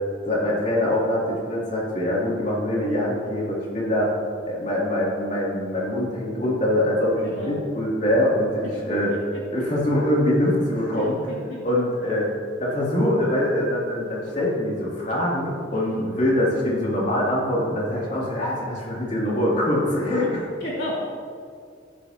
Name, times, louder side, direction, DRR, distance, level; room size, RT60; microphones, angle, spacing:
voice 1, 0.2-4.1 4.5-9.1 9.5-11.2 11.6-12.3 12.6-20.5, left 1 dB, 40° left, -6 dB, 3.0 m, -23 dB
voice 2, 7.2-7.6 8.9-9.6 10.9-11.7 15.7-16.1 20.3-21.0, equal, 60° left, -6 dB, 3.0 m, -34 dB
15.5 x 12.0 x 3.0 m, 2.2 s
head